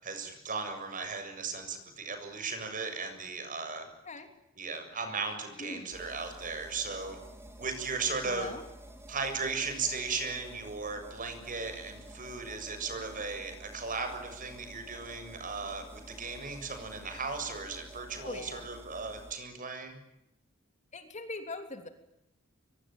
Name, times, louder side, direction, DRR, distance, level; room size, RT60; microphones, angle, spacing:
voice 1, 0.0-3.9 4.6-7.2 7.6-8.5 9.1-20.0, right 4 dB, 40° right, 7 dB, 7.3 m, -36 dB
voice 2, 5.6-5.9 8.2-8.7 18.2-18.6 20.9-21.9, left 2 dB, 35° left, 7 dB, 3.3 m, -41 dB
sound 1, 5.9-19.4, right 1 dB, 10° right, 4.5 m, -50 dB
25.0 x 24.5 x 9.2 m, 0.86 s
head